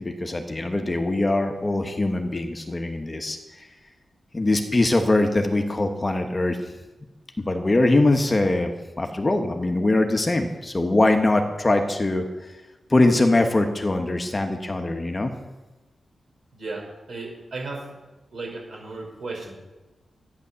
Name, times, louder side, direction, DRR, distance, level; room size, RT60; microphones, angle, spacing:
voice 1, 0.0-3.7 4.3-6.6 7.4-8.7 9.0-12.5 12.9-15.3, left 2 dB, 25° left, 5 dB, 1.1 m, -22 dB
voice 2, 16.5-16.8 17.1-17.9 18.3-19.6, right 3 dB, 60° right, -1 dB, 4.8 m, -34 dB
12.0 x 9.8 x 6.9 m, 1.1 s
wide cardioid pair, 130°, 0 cm